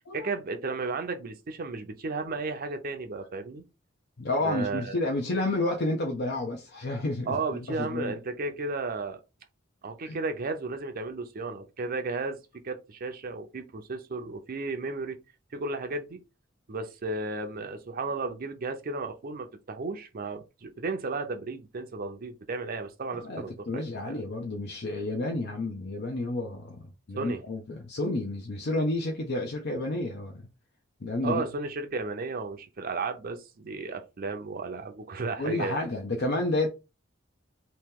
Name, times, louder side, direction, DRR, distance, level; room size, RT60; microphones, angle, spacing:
voice 1, 0.1-3.6 4.4-5.1 7.3-9.2 9.8-12.4 12.6-15.2 15.5-16.2 16.7-24.2 27.2-27.4 31.2-35.8, right 3 dB, 50° right, 0.5 m, -34 dB
voice 2, 4.2-8.1 10.0-10.2 23.1-26.8 27.1-30.5 31.0-31.5 35.4-36.7, left 2 dB, 55° left, 0.7 m, -30 dB
3.0 x 2.8 x 3.5 m
head